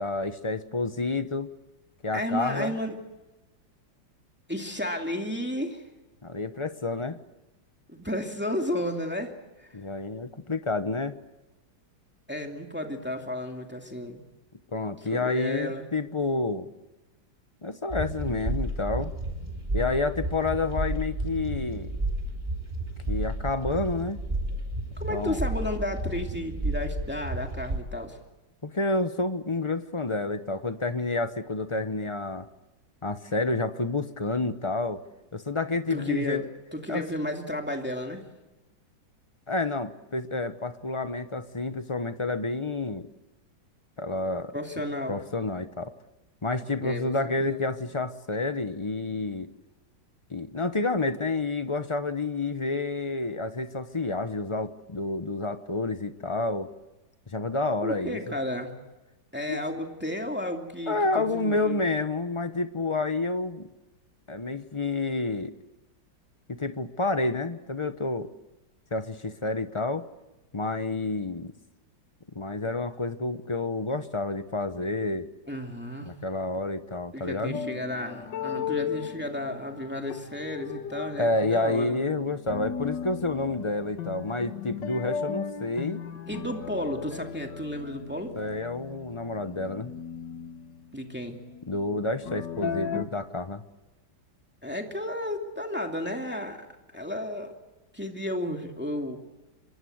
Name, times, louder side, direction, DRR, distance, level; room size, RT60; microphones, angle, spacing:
voice 1, 0.0-1.5 2.0-2.7 6.2-7.2 9.7-11.2 14.7-16.7 17.6-19.1 19.7-21.9 23.1-24.2 25.1-25.4 28.6-32.5 33.0-35.0 35.3-36.4 36.9-37.0 39.5-43.1 44.0-44.5 45.1-45.9 46.4-49.5 50.3-56.7 57.3-58.2 59.5-59.6 60.9-63.7 64.3-65.5 66.5-68.3 68.9-70.1 70.5-71.5 72.3-75.3 76.0-77.6 81.2-86.0 88.4-89.9 91.7-93.6, left 3 dB, 25° left, 11 dB, 0.6 m, -29 dB
voice 2, 2.1-3.0 4.5-5.8 7.9-9.3 9.6-9.8 12.3-14.2 15.1-15.9 25.0-28.2 35.9-36.4 36.7-38.3 44.5-45.2 46.8-47.6 57.8-58.7 59.3-61.9 75.5-76.1 77.1-82.1 86.3-88.4 90.9-91.4 94.6-97.5 97.9-99.2, left 1 dB, 5° right, 3 dB, 2.5 m, -33 dB
sound 1, 17.9-27.8, right 1 dB, 20° right, 3.3 m, -31 dB
sound 2, 77.5-93.1, left 7 dB, 70° left, 1.8 m, -37 dB
26.5 x 24.5 x 7.9 m, 1.1 s
omnidirectional pair, 2.0 m